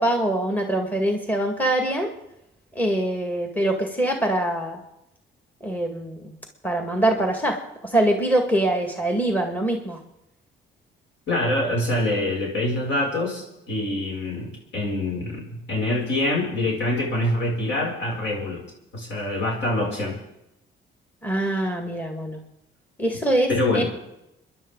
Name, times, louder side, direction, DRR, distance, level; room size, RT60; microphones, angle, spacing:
voice 1, 0.0-2.1 2.8-4.8 5.6-6.3 6.6-10.0 21.2-22.4 23.0-23.5 23.7-23.8, right 1 dB, 10° left, 3 dB, 2.1 m, -23 dB
voice 2, 11.3-18.6 18.9-20.2 23.5-23.8, left 1 dB, 70° left, -2 dB, 6.9 m, -25 dB
29.5 x 11.0 x 4.0 m, 0.86 s
cardioid pair, 90°, 20 cm